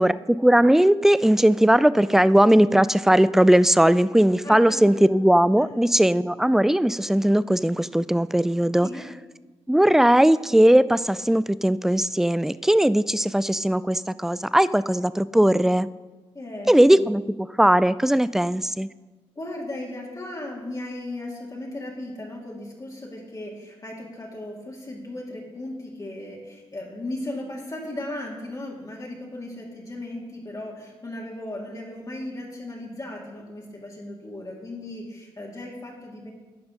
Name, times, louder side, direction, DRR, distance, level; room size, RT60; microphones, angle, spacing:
voice 1, 0.0-8.9 9.7-15.9 16.7-18.9, right 1 dB, 5° right, 17 dB, 0.3 m, -19 dB
voice 2, 4.4-4.9 5.6-5.8 8.8-9.1 16.3-17.0 19.4-36.3, left 1 dB, 30° left, -2 dB, 2.0 m, -36 dB
11.5 x 4.8 x 5.0 m, 1.2 s
supercardioid pair, 55°, 11 cm